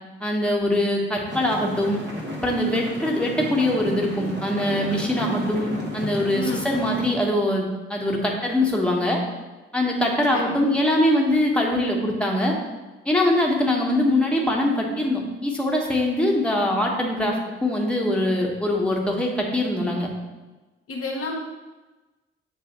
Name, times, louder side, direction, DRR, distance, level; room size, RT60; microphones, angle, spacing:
voice 1, 0.2-2.0 2.4-9.2 9.7-12.5 13.0-20.1, left 1 dB, 5° left, -1 dB, 1.4 m, -23 dB
sound 1, 1.3-7.1, equal, 35° right, 1.5 m, -33 dB
voice 2, 6.3-6.7 10.3-10.6 20.9-21.3, left 2 dB, 45° left, -1 dB, 1.0 m, -30 dB
7.6 x 3.4 x 4.3 m, 1.2 s
figure-of-eight pair, 40°, 31 cm